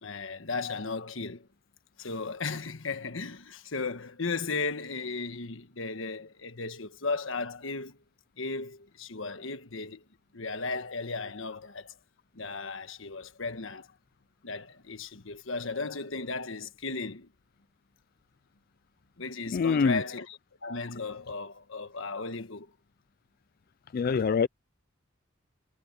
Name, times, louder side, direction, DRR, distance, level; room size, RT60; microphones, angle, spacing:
voice 1, 0.0-1.5 2.0-8.0 8.4-10.0 10.3-12.0 12.3-13.9 14.4-17.3 19.2-22.7, left 3 dB, 65° left, 1.4 m, -35 dB
voice 2, 19.5-20.0 23.9-24.5, left 5 dB, 45° left, 0.3 m, -24 dB
head